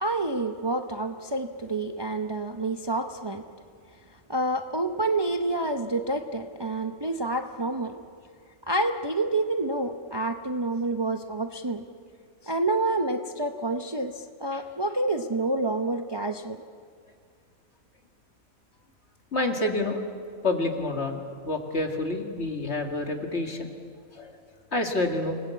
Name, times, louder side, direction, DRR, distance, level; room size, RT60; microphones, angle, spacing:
voice 1, 0.0-3.4 4.3-8.0 8.7-11.8 12.4-16.6, right 2 dB, 25° right, 6 dB, 0.7 m, -28 dB
voice 2, 19.3-20.0 20.4-23.7 24.2-24.3 24.7-25.4, left 2 dB, 50° left, 3 dB, 2.4 m, -28 dB
27.5 x 19.0 x 8.4 m, 2.3 s
omnidirectional pair, 1.4 m